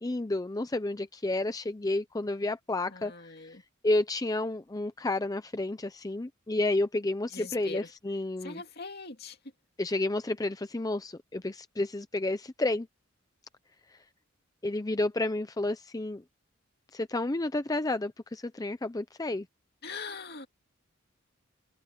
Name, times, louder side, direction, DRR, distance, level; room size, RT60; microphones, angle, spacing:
voice 1, 0.0-3.3 3.8-8.6 9.8-12.9 14.6-16.2 16.9-19.5, left 2 dB, 20° left, 0.6 m, -31 dB
voice 2, 2.9-3.6 7.3-7.9 8.4-9.4 9.8-10.0 19.8-20.5, left 4 dB, 55° left, 2.5 m, -41 dB
head